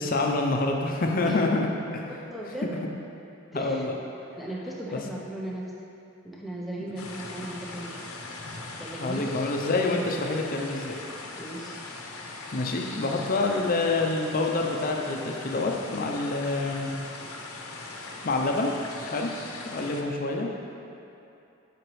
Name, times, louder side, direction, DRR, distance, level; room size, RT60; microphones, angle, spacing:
voice 1, 0.0-2.1 2.6-2.8 3.5-4.0 4.9-5.0 6.8-6.9 9.0-11.0 12.5-16.9 17.8-18.7 19.1-19.3 19.7-20.5, left 2 dB, 40° left, 2 dB, 0.5 m, -27 dB
voice 2, 2.1-2.7 3.5-3.9 4.4-5.6 6.2-7.9 8.8-9.5 11.4-11.7 19.8-19.9, right 1 dB, ahead, -4 dB, 0.6 m, -37 dB
sound 1, 7.0-20.0, left 3 dB, 85° left, 0.7 m, -40 dB
7.7 x 5.0 x 3.2 m, 2.8 s
head